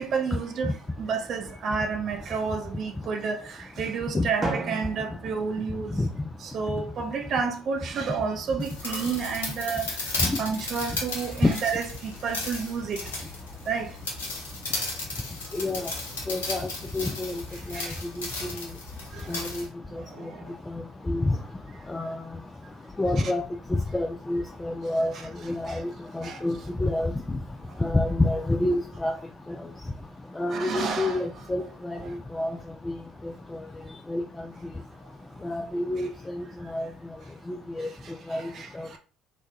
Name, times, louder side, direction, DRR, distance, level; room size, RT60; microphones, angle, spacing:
voice 1, 0.0-6.0 6.4-13.3 13.7-14.0 17.7-18.0 19.1-19.4 19.9-20.5 23.2-23.3 25.7-25.8 26.2-26.5 27.7-27.8 30.5-31.2 32.0-32.2 37.8-39.0, right 5 dB, 45° right, 0.5 m, -31 dB
Drum, 4.4-6.4, right 2 dB, 25° right, 0.8 m, -35 dB
sound 1, 8.6-19.7, left 3 dB, 80° left, 0.7 m, -35 dB
voice 2, 15.5-15.8 16.3-16.7 16.9-17.3 17.7-17.8 18.2-18.5 19.3-19.7 20.7-21.4 21.9-22.2 23.0-23.4 23.7-25.1 25.4-27.1 27.8-29.2 29.5-29.6 30.4-32.0 32.3-32.5 32.9-33.0 34.1-34.2 35.4-36.9 37.5-37.9 38.3-38.4 38.8-38.9, left 2 dB, 15° left, 0.3 m, -27 dB
3.0 x 2.1 x 3.4 m
figure-of-eight pair, 60°, 0 cm